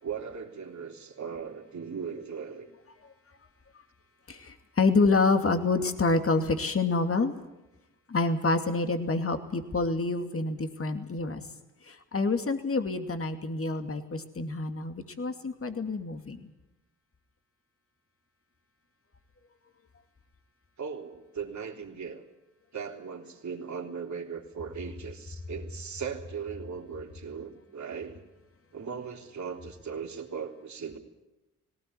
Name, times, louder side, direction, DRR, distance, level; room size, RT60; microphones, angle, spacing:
voice 1, 0.0-2.7 20.8-22.2 22.7-28.2 28.7-31.0, right 6 dB, 50° right, 2 dB, 3.6 m, -38 dB
voice 2, 4.3-7.3 8.1-11.4 11.9-16.5, left 3 dB, 40° left, 7 dB, 2.6 m, -27 dB
18.5 x 18.0 x 9.5 m, 0.98 s
supercardioid pair, 55°, 36 cm